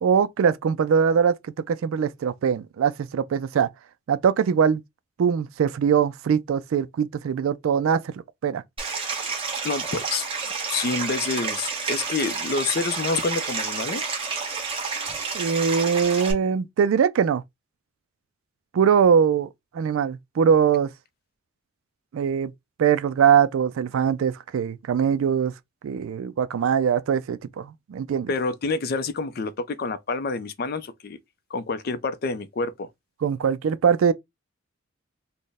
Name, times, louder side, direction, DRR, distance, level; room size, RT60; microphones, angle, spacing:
voice 1, 0.0-3.7 4.1-4.8 5.2-8.1 8.4-8.6 15.3-17.4 18.7-19.5 19.7-20.9 22.1-22.5 22.8-25.5 25.8-28.3 33.2-34.1, right 7 dB, 80° right, 0.3 m, -22 dB
Stream, 8.8-16.3, right 5 dB, 25° right, 1.0 m, -30 dB
voice 2, 9.6-10.3 10.7-14.1 28.3-31.2 31.5-32.9, left 4 dB, 45° left, 0.4 m, -28 dB
4.1 x 2.1 x 3.4 m
head